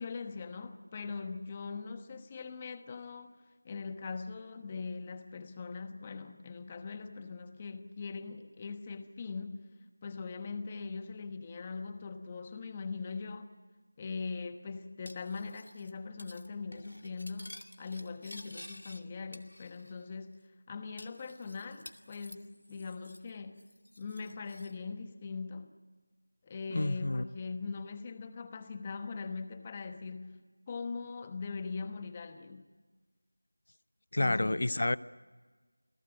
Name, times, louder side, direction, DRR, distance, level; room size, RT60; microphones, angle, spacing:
voice 1, 0.0-3.4 3.6-9.7 10.0-13.5 14.0-23.6 24.0-25.7 26.4-32.7 34.2-34.7, left 4 dB, 15° left, 9 dB, 1.1 m, -41 dB
Cutlery silverware, 15.0-15.9 16.2-16.5 16.7-19.0 19.3-20.0 20.3-20.4 21.0-23.3 23.6-24.7, left 1 dB, 90° left, 2.4 m, -52 dB
voice 2, 26.7-27.2 34.1-35.0, left 2 dB, 50° left, 17 dB, 0.7 m, -29 dB
28.5 x 17.5 x 9.1 m, 1.4 s
figure-of-eight pair, 175°, 0 cm